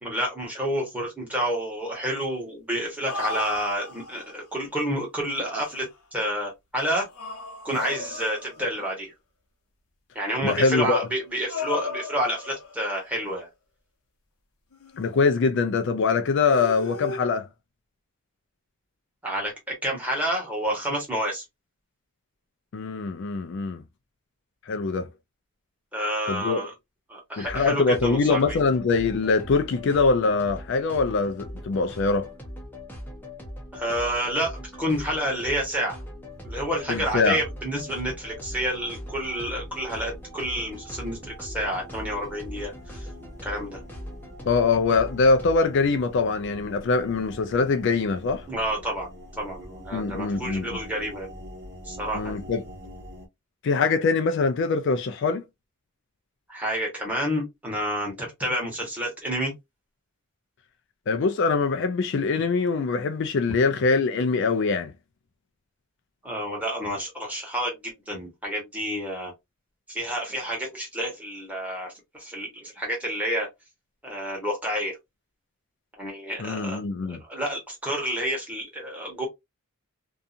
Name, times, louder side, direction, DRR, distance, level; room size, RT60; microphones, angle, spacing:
voice 1, 0.0-7.1 7.6-9.1 10.1-13.5 19.2-19.5 19.8-21.4 25.9-26.7 27.1-28.6 33.7-36.0 36.4-43.1 43.4-43.9 48.5-49.1 49.4-51.3 51.8-52.4 56.5-59.5 66.2-69.3 69.9-73.5 74.0-75.0 76.0-79.3, equal, 5° right, 1.1 m, -29 dB
sound 1, 2.8-4.4 5.4-6.0 6.9-8.8 10.6-13.1 14.7-15.5 16.4-17.2, left 3 dB, 85° left, 0.8 m, -35 dB
voice 2, 10.4-11.1 15.0-17.5 22.7-23.8 24.7-25.1 26.3-26.6 27.4-32.3 36.9-37.4 44.5-48.5 49.9-50.8 52.1-52.6 53.6-55.4 61.1-64.9 76.4-77.2, left 4 dB, 55° left, 0.3 m, -23 dB
sound 2, 27.4-45.6, equal, 10° left, 0.6 m, -41 dB
sound 3, 36.3-53.3, equal, 50° right, 1.1 m, -45 dB
2.7 x 2.3 x 2.4 m
head